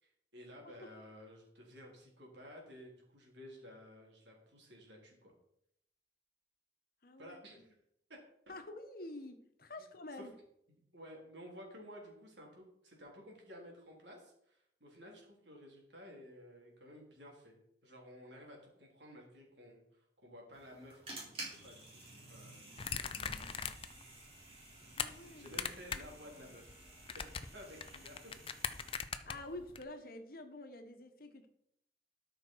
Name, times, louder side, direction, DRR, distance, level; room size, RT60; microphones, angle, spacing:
voice 1, 0.0-5.3 7.2-7.8 8.1-8.2 9.8-10.3 10.7-23.3 25.3-26.8 27.1-28.2, equal, 90° right, -1 dB, 3.4 m, -54 dB
voice 2, 7.0-7.4 8.5-10.3 25.0-25.6 29.2-31.5, left 2 dB, 55° left, 7 dB, 1.2 m, -48 dB
sound 1, 20.5-28.9, right 2 dB, 35° right, 4.0 m, -52 dB
sound 2, 22.8-24.0 24.4-25.1 25.5-26.2 26.4-29.8, left 7 dB, 30° left, 0.6 m, -40 dB
12.5 x 5.9 x 4.7 m, 0.74 s
head